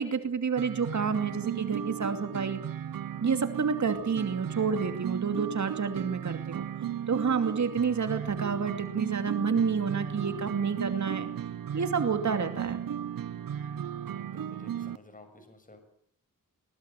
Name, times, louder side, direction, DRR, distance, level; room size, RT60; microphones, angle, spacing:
voice 1, 0.0-2.6 3.2-6.7 7.1-11.3 11.7-12.8, right 6 dB, 55° right, 8 dB, 2.6 m, -29 dB
sound 1, 0.6-15.0, right 9 dB, 85° right, 0.9 m, -36 dB
voice 2, 14.1-15.8, left 2 dB, 25° left, 7 dB, 6.3 m, -53 dB
22.5 x 20.0 x 8.3 m, 0.64 s
wide cardioid pair, 105°, 33 cm